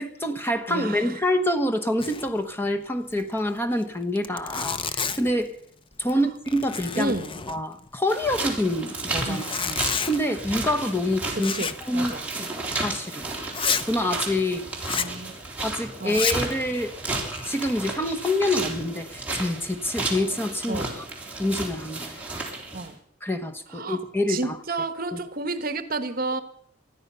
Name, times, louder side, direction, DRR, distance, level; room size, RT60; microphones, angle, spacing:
voice 1, 0.0-5.5 6.0-7.1 7.5-11.5 11.8-13.3 13.9-14.7 15.6-16.9 17.4-21.0 21.4-22.2 23.2-24.6 25.1-25.2, left 1 dB, 10° left, 1.2 m, -26 dB
voice 2, 0.7-1.1 6.1-6.3 6.9-7.4 9.3-9.5 11.3-12.3 15.0-15.3 16.0-16.2 20.7-20.9 22.7-23.0 23.7-24.0 24.3-26.4, right 3 dB, 50° right, 1.2 m, -31 dB
Zipper (clothing), 2.0-2.4 2.6-2.7 3.1-3.2 3.8-3.9 4.2-5.4 5.9-6.2 6.5-7.9 9.2-10.2 11.4-11.9 12.2-12.3 12.8-12.9 13.5-13.9 14.8-15.2 16.0-16.5 17.1-17.7, left 6 dB, 30° left, 0.7 m, -30 dB
sound 1, 8.1-22.9, right 2 dB, 10° right, 3.5 m, -33 dB
19.5 x 13.0 x 5.6 m
head